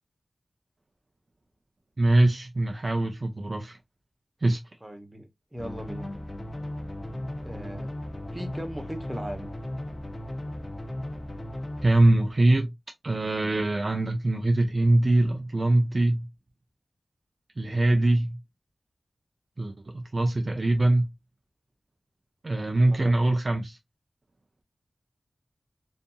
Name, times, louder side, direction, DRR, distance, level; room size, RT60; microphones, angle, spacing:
voice 1, 2.0-3.8 4.4-4.6 11.8-12.7 13.0-16.3 17.6-18.4 19.6-21.1 22.4-23.8, right 2 dB, 45° right, 0.5 m, -23 dB
voice 2, 4.8-6.1 7.4-7.9 8.3-9.6 22.5-23.2, equal, 15° right, 0.8 m, -38 dB
sound 1, 5.6-11.9, left 1 dB, 45° left, 0.6 m, -36 dB
2.7 x 2.5 x 2.2 m
wide cardioid pair, 60°, 0 cm